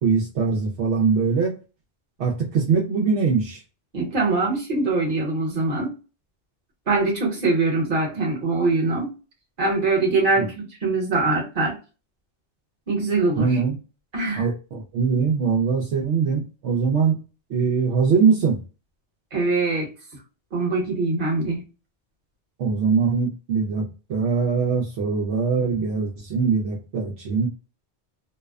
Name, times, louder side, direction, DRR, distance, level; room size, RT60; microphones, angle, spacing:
voice 1, 0.0-1.6 2.2-3.6 10.4-10.5 13.4-13.8 14.4-17.2 17.5-18.6 22.6-27.5, right 5 dB, 75° right, -1 dB, 0.9 m, -22 dB
voice 2, 3.9-5.9 6.9-9.1 9.6-10.5 10.8-11.8 12.9-13.6 14.1-14.5 19.3-19.9 20.5-21.6, right 3 dB, 50° right, -1 dB, 1.1 m, -23 dB
2.7 x 2.1 x 2.2 m, 0.33 s
omnidirectional pair, 1.2 m